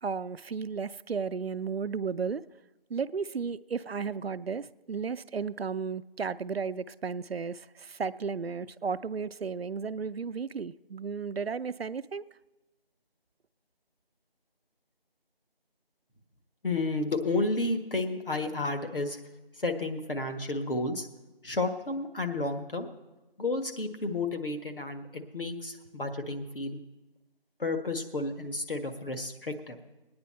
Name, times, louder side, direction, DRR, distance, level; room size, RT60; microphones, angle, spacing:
voice 1, 0.0-2.4 2.9-12.2, right 5 dB, 85° right, 14 dB, 0.6 m, -34 dB
voice 2, 16.6-19.2 19.6-21.0 21.4-22.9 23.4-26.8 27.6-29.8, left 2 dB, 65° left, 4 dB, 1.6 m, -31 dB
19.5 x 9.6 x 4.4 m, 1.1 s
figure-of-eight pair, 175°, 30 cm